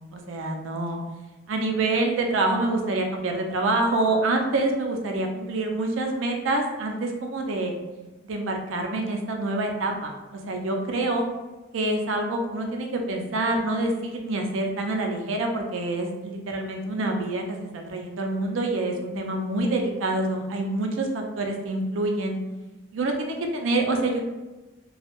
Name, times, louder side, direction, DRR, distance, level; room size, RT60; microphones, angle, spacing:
voice 1, 0.1-1.0 1.5-7.7 8.2-11.2 11.7-22.4 22.9-24.2, right 2 dB, 80° right, 2 dB, 0.4 m, -26 dB
2.2 x 2.1 x 2.9 m, 1.1 s
head